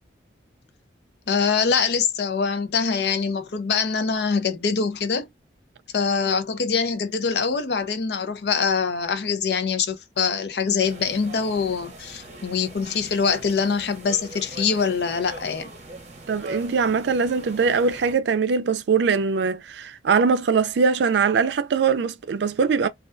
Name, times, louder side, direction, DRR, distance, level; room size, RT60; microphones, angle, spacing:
voice 1, 1.3-5.3 5.9-15.7, left 5 dB, 70° left, 0.5 m, -24 dB
sound 1, 10.8-18.1, right 2 dB, 40° right, 0.7 m, -41 dB
voice 2, 16.3-22.9, right 5 dB, 80° right, 0.4 m, -22 dB
2.3 x 2.2 x 2.4 m
head